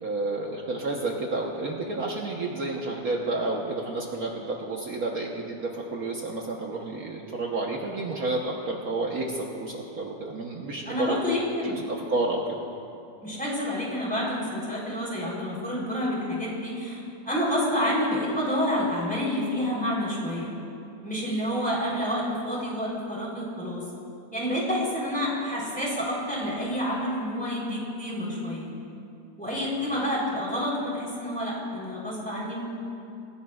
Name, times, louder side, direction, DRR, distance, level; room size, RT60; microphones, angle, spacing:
voice 1, 0.0-11.2 11.9-12.6 21.5-21.6 29.5-29.6, right 2 dB, 60° right, -1 dB, 1.5 m, -30 dB
voice 2, 10.9-11.9 13.2-17.0 17.3-20.5 21.0-23.8 24.3-28.7 29.4-32.6, equal, 5° left, -5 dB, 3.5 m, -28 dB
27.5 x 16.0 x 2.4 m, 2.7 s
omnidirectional pair, 1.9 m